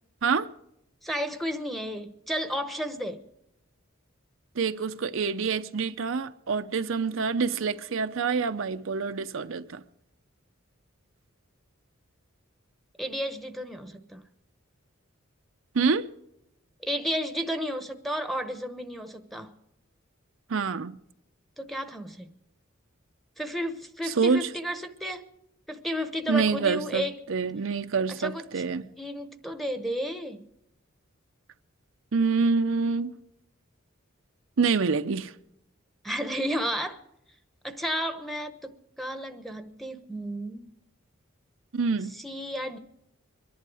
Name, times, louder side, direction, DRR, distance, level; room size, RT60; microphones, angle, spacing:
voice 1, 1.0-3.2 13.0-14.2 16.8-19.5 21.6-22.3 23.4-25.2 25.7-27.2 28.1-28.6 29.0-30.5 36.0-37.0 37.6-40.7 42.1-42.8, equal, ahead, 1.1 m, -32 dB
voice 2, 4.6-9.8 15.7-16.1 20.5-21.0 24.1-24.5 26.3-28.9 32.1-33.1 34.6-35.3 41.7-42.1, right 5 dB, 70° right, 0.6 m, -26 dB
24.0 x 11.0 x 4.9 m
head